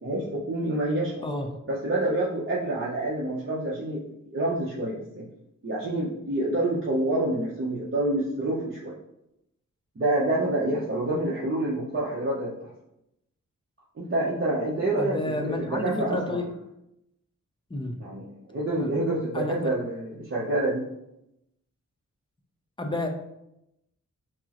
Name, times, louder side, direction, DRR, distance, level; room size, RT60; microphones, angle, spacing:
voice 1, 0.0-1.2 1.7-5.3 5.6-8.9 10.0-12.5 14.0-16.4 18.0-20.8, right 1 dB, 40° right, -6 dB, 0.7 m, -27 dB
voice 2, 15.0-16.5 17.7-18.0 18.8-18.9 19.3-19.7 22.8-23.1, left 1 dB, 15° left, 3 dB, 0.5 m, -30 dB
5.9 x 2.1 x 2.9 m, 0.84 s
wide cardioid pair, 90°, 31 cm